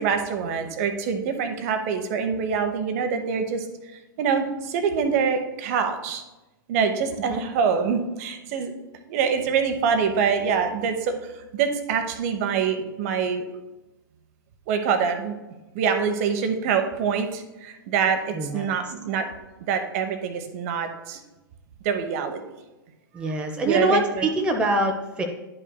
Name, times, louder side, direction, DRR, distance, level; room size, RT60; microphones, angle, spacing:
voice 1, 0.0-3.7 4.2-6.2 6.7-8.7 9.1-13.4 14.7-15.4 15.7-19.3 19.6-21.2 21.8-22.4 23.7-24.3, right 6 dB, 40° right, 7 dB, 0.8 m, -25 dB
voice 2, 7.1-7.4 18.3-18.9 23.1-25.2, right 1 dB, 10° right, 2 dB, 0.7 m, -25 dB
10.5 x 5.4 x 2.2 m, 1.0 s
figure-of-eight pair, 110°, 12 cm